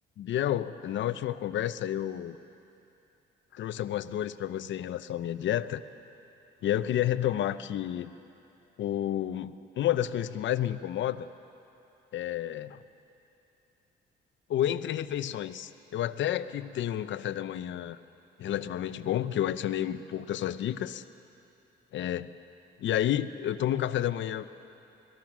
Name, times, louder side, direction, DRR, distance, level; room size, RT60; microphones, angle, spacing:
voice 1, 0.2-2.4 3.5-5.8 6.6-8.1 8.8-11.3 12.1-12.8 14.5-18.0 18.4-21.0 21.9-22.3 22.8-24.5, left 11 dB, 70° left, 13 dB, 0.7 m, -30 dB
25.5 x 20.0 x 6.1 m, 2.8 s
cardioid pair, 90°, 20 cm